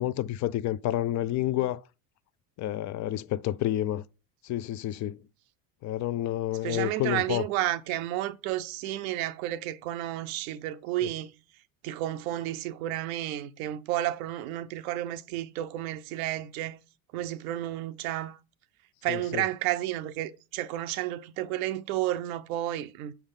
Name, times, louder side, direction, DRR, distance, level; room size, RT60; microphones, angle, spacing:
voice 1, 0.0-1.8 2.6-4.0 4.4-5.2 5.8-7.4 19.1-19.4, left 13 dB, 45° left, 0.5 m, -29 dB
voice 2, 6.6-11.3 11.8-16.8 17.1-18.4 19.0-23.1, right 14 dB, 85° right, 0.7 m, -31 dB
7.3 x 3.5 x 5.5 m
supercardioid pair, 100°, 41 cm